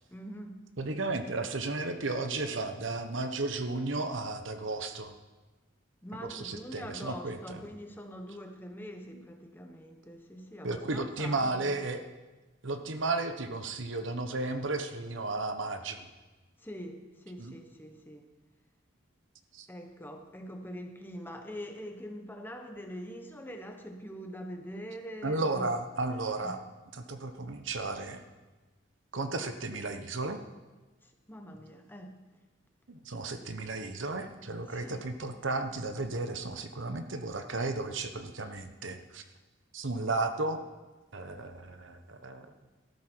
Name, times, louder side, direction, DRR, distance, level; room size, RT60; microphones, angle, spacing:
voice 1, 0.1-0.6 6.0-11.8 16.6-18.3 19.7-25.8 26.4-26.6 31.0-32.2 34.7-35.0, equal, 10° left, 4 dB, 1.1 m, -44 dB
voice 2, 0.8-5.1 6.2-7.6 10.6-12.0 12.6-16.1 17.4-17.6 19.5-19.7 25.2-26.6 26.9-28.2 29.1-30.4 32.9-39.2 39.7-40.6 41.1-42.5, right 3 dB, 75° right, 8 dB, 1.0 m, -34 dB
14.0 x 12.5 x 4.6 m, 1.2 s
head